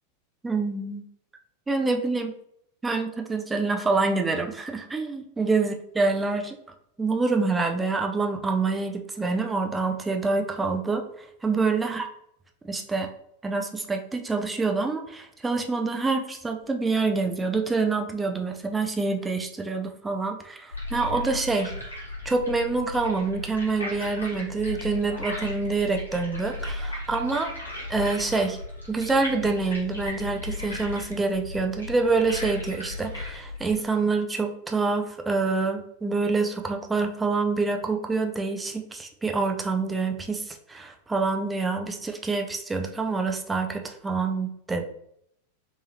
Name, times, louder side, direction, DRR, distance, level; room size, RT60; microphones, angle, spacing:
voice 1, 0.4-1.0 1.7-2.3 2.8-6.6 7.0-12.0 12.6-13.1 13.4-21.7 22.2-27.5 27.9-28.6 28.9-44.9, right 3 dB, 10° right, 4 dB, 0.5 m, -26 dB
sound 1, 20.7-33.8, left 2 dB, 80° left, 1.4 m, -36 dB
3.5 x 3.3 x 2.7 m, 0.72 s
figure-of-eight pair, 90°, 0 cm